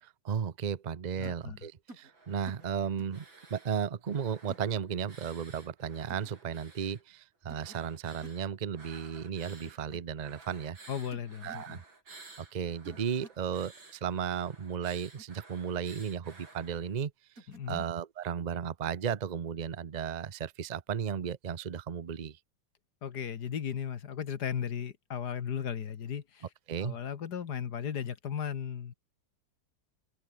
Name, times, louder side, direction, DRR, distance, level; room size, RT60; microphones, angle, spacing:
voice 1, 0.0-3.2 3.5-10.8 11.4-11.8 12.4-17.1 17.7-22.4 26.7-27.0, right 7 dB, 60° right, 0.4 m, -34 dB
voice 2, 1.2-1.6 10.9-11.8 17.5-17.8 23.0-26.5 26.8-28.9, left 8 dB, 60° left, 1.9 m, -36 dB
sound 1, 1.2-1.4 1.9-2.1 2.5-2.7 3.0-3.2 4.5-4.7 6.1-6.3 7.5-7.8 8.0-8.4 9.6-10.0 11.1-11.7 12.8-13.4 15.0-15.3 17.4-17.9, right 2 dB, 45° right, 7.4 m, -52 dB
sound 2, 2.0-7.0 7.5-9.8 10.1-17.0, right 3 dB, 90° right, 6.0 m, -55 dB
omnidirectional pair, 2.1 m